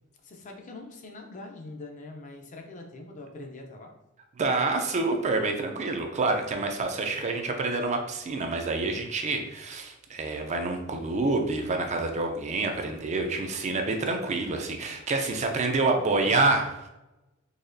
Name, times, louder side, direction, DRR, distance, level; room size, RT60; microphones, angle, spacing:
voice 1, 0.2-3.9 15.8-16.3, left 2 dB, 35° left, 3 dB, 0.5 m, -43 dB
voice 2, 4.4-16.9, right 3 dB, 30° right, 4 dB, 0.4 m, -27 dB
4.1 x 2.8 x 2.6 m, 0.94 s
head